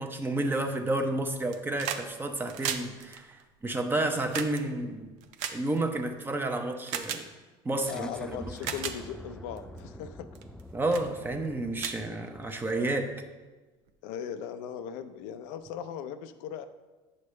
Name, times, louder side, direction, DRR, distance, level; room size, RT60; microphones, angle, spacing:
voice 1, 0.0-5.1 5.5-7.2 7.6-8.7 10.7-13.1, right 2 dB, 15° right, 5 dB, 0.8 m, -31 dB
sound 1, 1.4-2.1 2.3-6.2 6.9-7.2 8.0-8.1 8.5-9.0 9.6-9.8 10.3-10.6 10.9-11.1 11.4-11.5 11.8-12.7 13.9-14.0, right 8 dB, 70° right, 0.7 m, -36 dB
sound 2, 7.8-13.3, left 1 dB, 5° left, 0.3 m, -47 dB
voice 2, 7.9-10.3 14.0-16.7, left 8 dB, 75° left, 9 dB, 0.5 m, -38 dB
8.6 x 6.4 x 3.2 m, 1.2 s
supercardioid pair, 105°, 13 cm